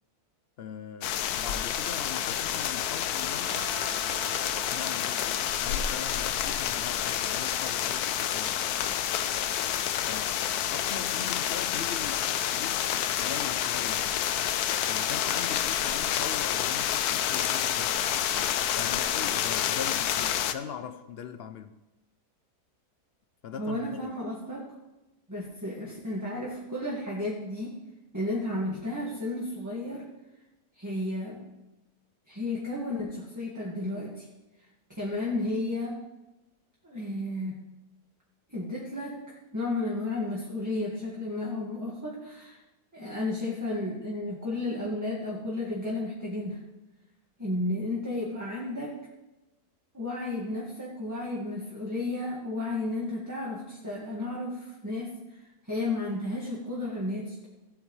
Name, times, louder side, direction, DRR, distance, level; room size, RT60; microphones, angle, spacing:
voice 1, 0.6-3.7 4.7-8.6 10.0-14.1 14.9-18.0 18.8-21.8 23.4-24.2, left 7 dB, 65° left, 0.6 m, -41 dB
sound 1, 1.0-20.5, left 10 dB, 80° left, 1.1 m, -29 dB
sound 2, 2.1-10.6, right 3 dB, 90° right, 2.1 m, -48 dB
voice 2, 23.6-24.7 25.3-27.8 28.1-30.0 30.8-31.4 32.3-34.3 34.9-36.0 36.8-37.6 38.5-42.6 42.9-46.6 47.4-48.9 49.9-57.5, left 2 dB, 10° right, 1.8 m, -33 dB
17.0 x 8.8 x 3.2 m
omnidirectional pair, 1.6 m